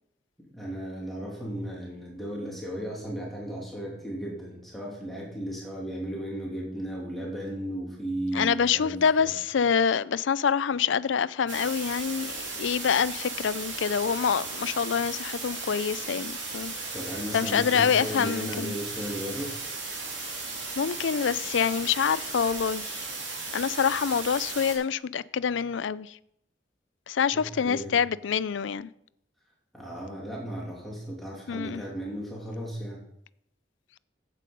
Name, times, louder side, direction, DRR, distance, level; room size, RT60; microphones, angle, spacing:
voice 1, 0.5-9.3 16.9-19.6 27.3-27.9 29.7-33.0, equal, ahead, 2.8 m, -35 dB
voice 2, 8.3-16.7 17.3-18.7 20.8-23.1 23.5-26.2 27.1-28.9 31.5-31.8, left 7 dB, 75° left, 0.4 m, -26 dB
sound 1, 11.5-24.8, right 3 dB, 75° right, 3.5 m, -36 dB
11.5 x 8.3 x 5.3 m
head